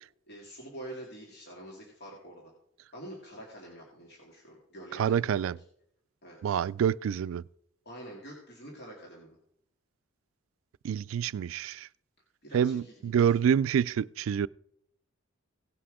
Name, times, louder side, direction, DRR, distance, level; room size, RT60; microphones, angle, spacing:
voice 1, 0.3-2.5 2.9-5.5 6.2-6.6 7.9-9.4 12.4-13.4, right 1 dB, 55° left, 2.3 m, -46 dB
voice 2, 4.9-5.6 6.4-7.4 10.8-11.9 12.5-14.5, right 8 dB, 75° right, 0.3 m, -27 dB
17.0 x 5.8 x 4.9 m
head